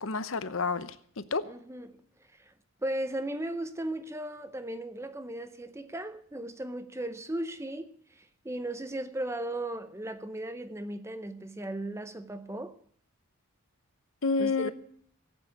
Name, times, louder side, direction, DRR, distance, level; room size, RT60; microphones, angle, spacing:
voice 1, 0.0-1.4 14.2-14.7, left 4 dB, 65° left, 0.8 m, -29 dB
voice 2, 1.4-2.0 2.4-2.5 2.8-12.8 14.4-14.7, right 1 dB, 10° right, 0.6 m, -36 dB
16.0 x 8.6 x 8.3 m
head